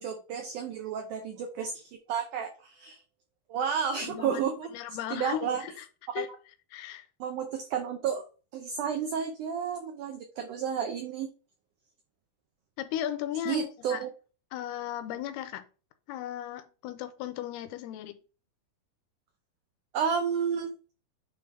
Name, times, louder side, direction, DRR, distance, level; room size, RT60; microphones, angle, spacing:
voice 1, 0.0-3.0 3.5-4.7 5.1-5.6 6.2-6.3 7.2-8.3 8.5-11.3 13.5-14.1 19.9-20.7, right 7 dB, 85° right, 1.7 m, -31 dB
voice 2, 4.0-4.4 4.7-5.9 6.1-6.4 6.7-7.1 12.8-14.0 14.5-15.6 16.1-18.2, left 11 dB, 85° left, 2.6 m, -36 dB
9.1 x 3.4 x 3.3 m
omnidirectional pair, 4.6 m